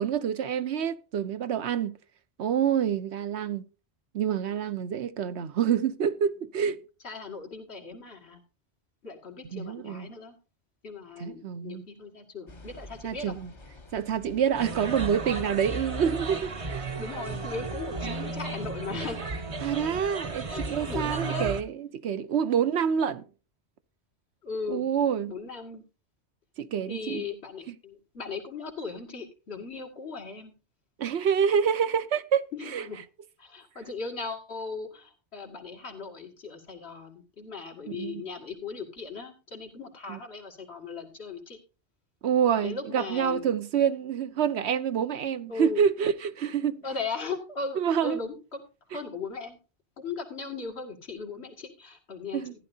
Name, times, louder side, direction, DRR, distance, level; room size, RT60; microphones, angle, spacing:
voice 1, 0.0-2.0 2.4-3.7 4.1-6.8 9.5-10.1 11.2-11.9 13.0-13.5 13.9-16.9 18.0-18.3 19.6-23.2 24.7-25.3 26.6-27.2 27.7-27.8 31.0-32.5 32.7-32.8 37.9-38.2 40.1-40.2 42.2-46.8 47.8-48.2 52.3-52.5, right 8 dB, 80° right, 1.0 m, -27 dB
voice 2, 7.0-8.4 9.0-10.4 10.8-13.3 17.0-19.6 20.5-21.5 24.4-24.8 25.3-25.8 26.9-30.5 32.5-33.0 33.4-41.6 42.6-43.5 45.5-45.8 46.8-48.6 48.9-49.6 50.0-52.6, left 4 dB, 70° left, 2.6 m, -38 dB
sound 1, 12.5-18.4, left 1 dB, 30° left, 0.8 m, -48 dB
sound 2, 14.6-21.6, right 3 dB, 35° right, 0.8 m, -34 dB
14.5 x 11.0 x 2.7 m
omnidirectional pair, 1.1 m